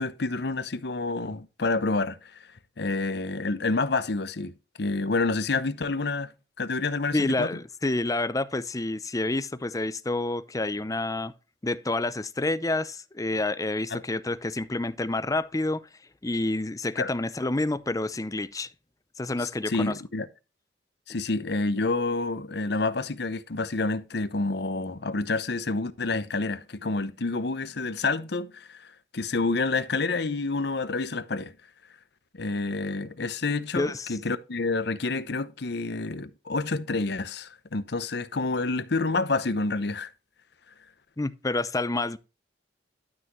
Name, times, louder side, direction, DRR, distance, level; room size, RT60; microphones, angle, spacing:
voice 1, 0.0-2.5 2.8-4.5 4.8-6.3 6.6-7.5 13.9-14.0 17.0-17.1 19.4-20.3 21.1-31.5 32.3-40.1, left 3 dB, 65° left, 0.9 m, -28 dB
voice 2, 7.1-11.3 11.6-15.9 16.2-18.7 19.2-19.9 33.7-34.1 41.2-42.2, left 2 dB, 20° left, 0.6 m, -28 dB
12.0 x 6.0 x 3.2 m
head